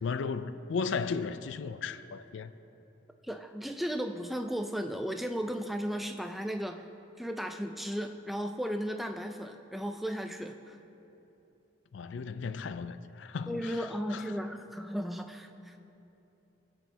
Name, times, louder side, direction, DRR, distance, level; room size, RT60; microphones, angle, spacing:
voice 1, 0.0-2.5 11.9-14.2, left 5 dB, 75° left, 0.4 m, -35 dB
voice 2, 3.2-6.9 7.2-10.8 13.5-15.8, equal, ahead, 0.3 m, -35 dB
20.0 x 7.9 x 2.8 m
head